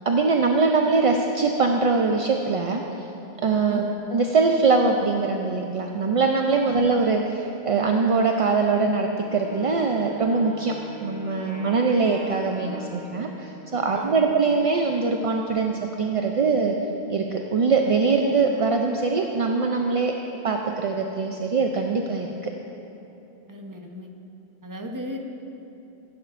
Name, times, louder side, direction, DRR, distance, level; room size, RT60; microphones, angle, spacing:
voice 1, 0.1-3.1 3.4-16.8 17.1-20.1 20.4-22.5, right 4 dB, 50° right, 2 dB, 0.4 m, -22 dB
voice 2, 3.7-4.0 6.7-6.9 13.9-14.3 23.5-24.1 24.6-25.2, left 1 dB, 20° right, 2 dB, 0.8 m, -37 dB
Wind instrument woodwind instrument, 9.2-14.1, left 1 dB, 10° left, 1.1 m, -42 dB
15.0 x 11.0 x 2.5 m, 2.9 s
omnidirectional pair, 1.1 m